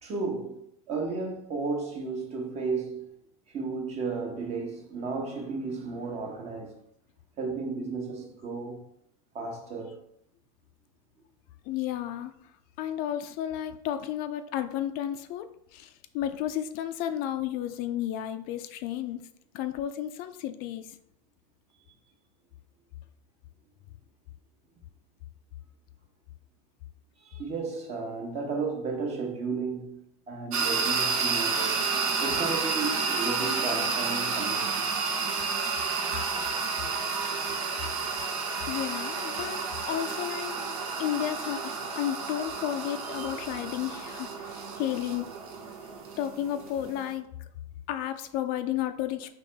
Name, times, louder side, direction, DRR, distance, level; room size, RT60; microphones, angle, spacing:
voice 1, 0.0-3.1 3.5-6.8 7.4-8.8 9.3-10.0 27.2-31.8 32.2-34.9, right 4 dB, 35° right, 1.1 m, -33 dB
voice 2, 11.7-12.3 12.8-19.2 19.5-21.0 38.7-40.5 41.0-45.3 46.2-47.3 47.9-49.3, left 11 dB, 55° left, 0.4 m, -32 dB
sound 1, 30.5-47.1, right 4 dB, 75° right, 0.8 m, -31 dB
4.1 x 2.9 x 3.3 m
hypercardioid pair, 100°, 18 cm